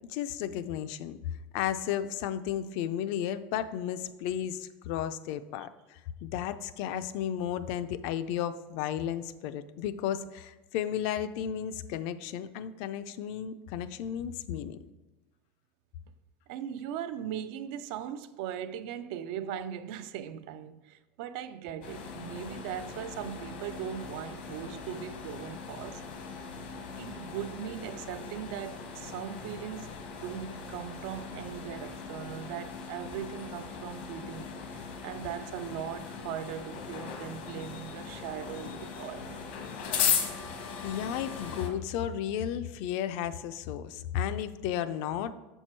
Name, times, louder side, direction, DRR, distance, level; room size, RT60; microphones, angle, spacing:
voice 1, 0.1-14.8 40.8-45.3, left 10 dB, 55° left, 0.3 m, -33 dB
voice 2, 16.5-26.0 27.0-29.9 30.2-39.4, right 10 dB, 55° right, 0.3 m, -39 dB
sound 1, 21.8-41.7, left 6 dB, 90° left, 1.1 m, -38 dB
6.6 x 4.4 x 4.5 m
cardioid pair, 175°, 6 cm